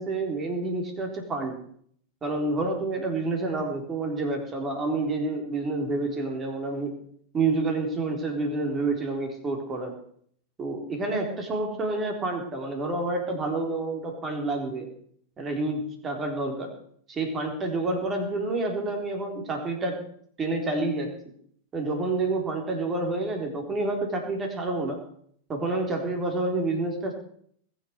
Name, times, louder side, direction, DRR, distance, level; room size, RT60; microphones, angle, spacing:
voice 1, 0.0-1.6 2.2-6.9 7.3-9.9 10.6-14.9 15.4-16.8 17.1-20.0 20.4-21.2 21.7-25.0 25.5-27.1, right 2 dB, 20° right, 3 dB, 4.0 m, -28 dB
20.5 x 7.8 x 6.7 m, 0.63 s
figure-of-eight pair, 90°, 0 cm